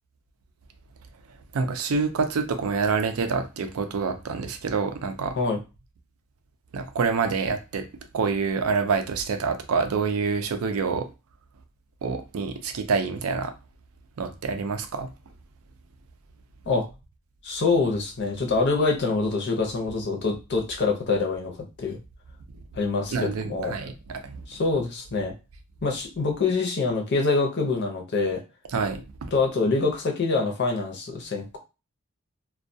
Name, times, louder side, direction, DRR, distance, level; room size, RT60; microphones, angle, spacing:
voice 1, 1.5-5.4 6.7-7.9 8.1-11.1 12.0-13.5 14.2-15.1 23.1-24.6 28.7-29.3, right 5 dB, 70° right, 0.4 m, -27 dB
voice 2, 17.4-21.5 21.8-22.0 22.7-23.7 24.5-25.3 25.8-28.4 29.3-31.6, left 3 dB, 50° left, 0.6 m, -25 dB
2.2 x 2.2 x 2.6 m
head